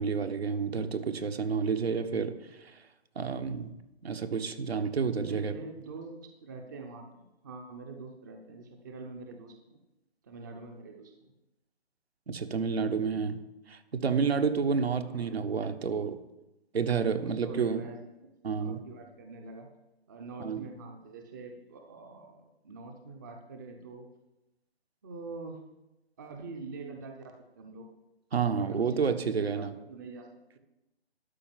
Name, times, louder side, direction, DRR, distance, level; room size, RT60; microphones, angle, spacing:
voice 1, 0.0-2.8 3.1-3.7 4.0-5.5 12.3-13.4 13.7-16.2 16.7-17.8 18.4-18.8 20.4-20.6 28.3-29.7, right 5 dB, 70° right, 7 dB, 1.3 m, -30 dB
voice 2, 5.2-9.8 10.2-11.3 15.0-15.4 17.1-18.3 18.6-19.7 20.1-24.1 25.0-25.6 26.2-27.9 28.5-30.3, right 3 dB, 20° right, 3 dB, 0.7 m, -45 dB
12.5 x 5.0 x 7.6 m, 0.95 s
figure-of-eight pair, 155°, 32 cm